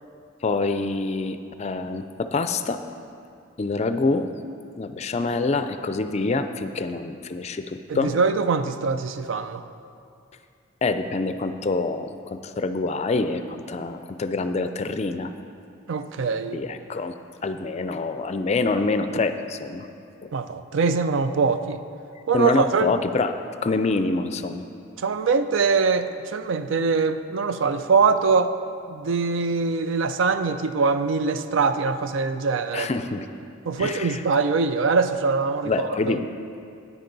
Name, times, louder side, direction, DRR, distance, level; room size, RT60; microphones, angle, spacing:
voice 1, 0.4-2.8 3.6-4.3 4.8-8.1 10.8-15.3 16.5-17.1 17.4-19.9 20.2-20.3 22.3-24.6 32.7-33.3 33.8-34.2 35.6-36.3, left 3 dB, 35° left, 9 dB, 0.4 m, -26 dB
voice 2, 7.9-9.6 15.9-16.6 20.3-21.8 22.3-22.9 25.0-28.5 28.9-32.9 33.7-36.2, right 4 dB, 80° right, 10 dB, 0.4 m, -23 dB
9.9 x 9.1 x 4.0 m, 2.5 s
head